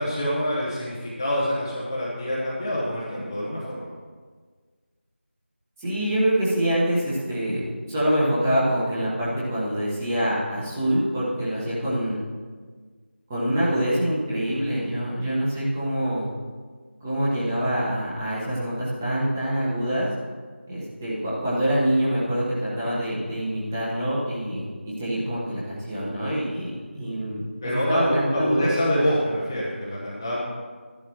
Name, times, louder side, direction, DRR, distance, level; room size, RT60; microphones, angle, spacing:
voice 1, 0.0-3.8 27.6-30.4, equal, 15° left, -7 dB, 0.9 m, -26 dB
voice 2, 5.8-12.2 13.3-16.3 17.0-20.1 20.7-27.4 27.9-28.7, equal, 10° right, -9 dB, 1.4 m, -25 dB
13.0 x 11.0 x 3.1 m, 1.5 s
figure-of-eight pair, 170°, 7 cm